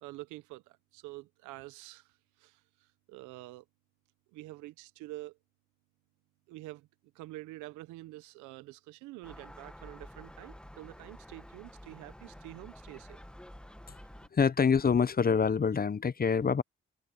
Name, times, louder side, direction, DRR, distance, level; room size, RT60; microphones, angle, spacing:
voice 1, 0.0-2.1 2.4-3.6 4.3-5.4 6.5-6.9 7.1-13.2, right 18 dB, 90° right, 1.1 m, -47 dB
Gull seagull, 9.2-14.3, equal, 5° left, 1.6 m, -50 dB
voice 2, 14.3-16.6, left 6 dB, 30° left, 0.8 m, -26 dB
supercardioid pair, 55°, 29 cm